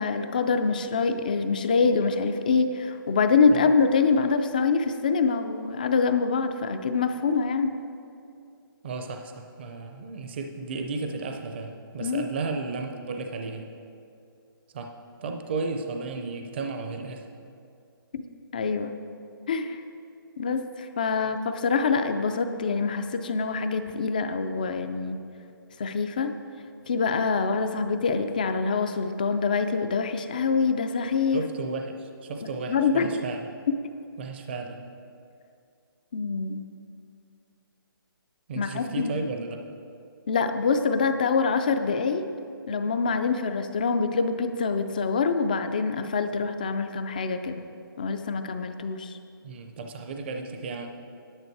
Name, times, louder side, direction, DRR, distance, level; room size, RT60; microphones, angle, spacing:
voice 1, 0.0-7.8 12.0-12.3 18.5-18.9 19.5-19.8 20.4-25.2 25.8-26.4 26.9-31.4 32.7-33.1 33.7-33.8 36.1-36.6 38.6-39.2 40.3-42.3 42.7-47.6 48.0-49.2, left 5 dB, 20° left, 8 dB, 0.3 m, -25 dB
voice 2, 8.8-13.7 14.7-14.9 15.2-17.2 31.3-33.4 34.2-34.8 38.5-39.6 49.4-50.9, right 3 dB, 30° right, 4 dB, 0.5 m, -34 dB
9.7 x 9.0 x 4.6 m, 2.5 s
hypercardioid pair, 165°, 12 cm